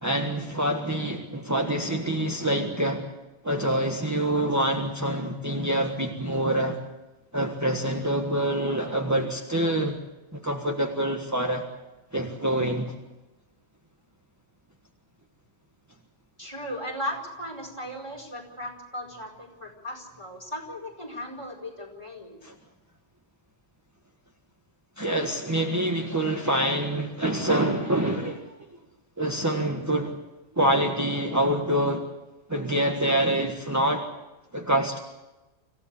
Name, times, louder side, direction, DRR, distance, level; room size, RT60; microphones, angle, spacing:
voice 1, 0.0-3.1 3.4-6.8 7.3-10.0 10.3-11.6 12.1-12.9 22.4-22.5 25.0-28.6 29.2-30.2 30.6-32.0 32.5-34.1 34.5-35.0, right 1 dB, 15° right, 2 dB, 1.5 m, -26 dB
voice 2, 16.4-22.4, equal, 25° left, 1 dB, 4.9 m, -37 dB
26.0 x 16.0 x 8.3 m, 1.1 s
omnidirectional pair, 1.1 m